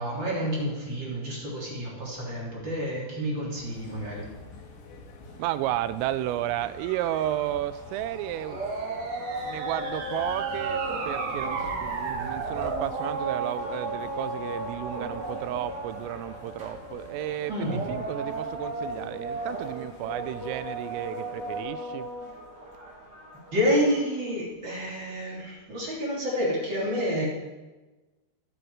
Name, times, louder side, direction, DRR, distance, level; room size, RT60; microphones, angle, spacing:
voice 1, 0.0-4.2 17.5-17.8 23.5-27.3, equal, 30° right, -4 dB, 2.9 m, -29 dB
sound 1, 3.6-21.6, left 4 dB, 85° left, 4.8 m, -47 dB
voice 2, 5.4-8.6 9.4-22.1, right 13 dB, 85° right, 14 dB, 3.2 m, -33 dB
sound 2, 7.8-24.1, right 2 dB, 45° right, 1.2 m, -35 dB
sound 3, 8.5-12.9, right 4 dB, 65° right, 2.2 m, -34 dB
22.0 x 7.9 x 4.8 m, 1.2 s
omnidirectional pair, 5.9 m